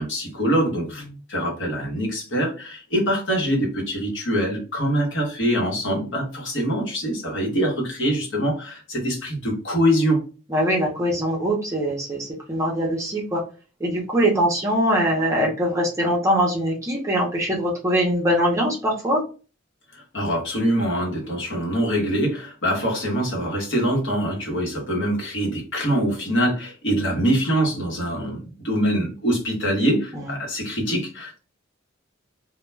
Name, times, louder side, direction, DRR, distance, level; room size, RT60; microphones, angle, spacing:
voice 1, 0.0-10.2 19.9-31.4, equal, 60° left, -1 dB, 1.0 m, -24 dB
voice 2, 10.5-13.4 13.8-19.2 30.1-30.2, equal, 15° right, -2 dB, 0.6 m, -22 dB
2.2 x 2.2 x 3.1 m, 0.35 s
head